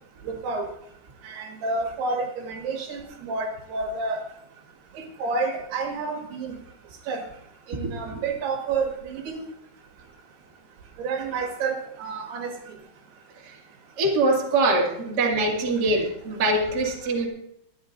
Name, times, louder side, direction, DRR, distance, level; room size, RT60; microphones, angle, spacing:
voice 1, 0.2-0.7 1.3-4.2 5.2-6.5 7.1-7.2 7.7-9.4 11.0-12.5, right 4 dB, 75° right, 2 dB, 3.8 m, -29 dB
voice 2, 7.8-8.2 14.0-17.3, right 2 dB, 30° right, -1 dB, 2.2 m, -23 dB
25.5 x 10.0 x 2.6 m, 0.75 s
omnidirectional pair, 4.8 m